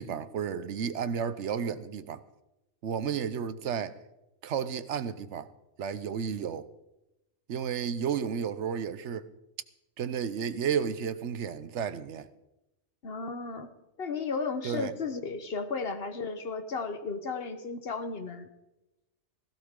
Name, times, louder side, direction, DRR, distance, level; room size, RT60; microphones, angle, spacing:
voice 1, 0.0-2.2 2.8-4.0 4.4-5.5 5.8-6.7 7.5-9.3 10.0-12.3 14.6-14.9, right 7 dB, 75° right, 1.0 m, -32 dB
voice 2, 13.0-13.7 14.0-18.5, left 4 dB, 55° left, 1.3 m, -34 dB
16.0 x 16.0 x 3.7 m
omnidirectional pair, 1.2 m